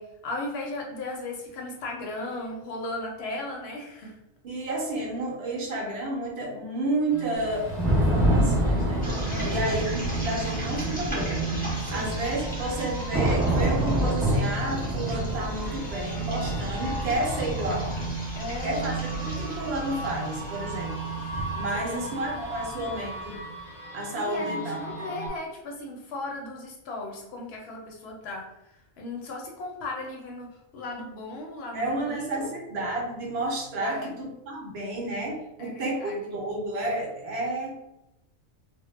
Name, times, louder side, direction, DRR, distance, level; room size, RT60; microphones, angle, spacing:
voice 1, 0.0-4.2 9.3-9.6 11.9-12.1 18.4-19.0 21.7-22.2 24.1-28.5 29.0-32.5 33.8-34.2 35.6-36.4, left 2 dB, 70° left, -1 dB, 0.8 m, -36 dB
voice 2, 4.4-11.4 11.9-17.9 18.6-23.4 23.9-25.1 31.7-37.8, right 1 dB, 70° right, -1 dB, 0.8 m, -31 dB
sound 1, 7.1-25.3, right 4 dB, 45° left, 0.5 m, -36 dB
Thunder / Rain, 7.4-23.1, right 1 dB, 20° right, 0.4 m, -29 dB
sound 2, 9.0-21.9, equal, 10° left, 0.8 m, -39 dB
2.1 x 2.0 x 3.0 m, 0.89 s
omnidirectional pair, 1.2 m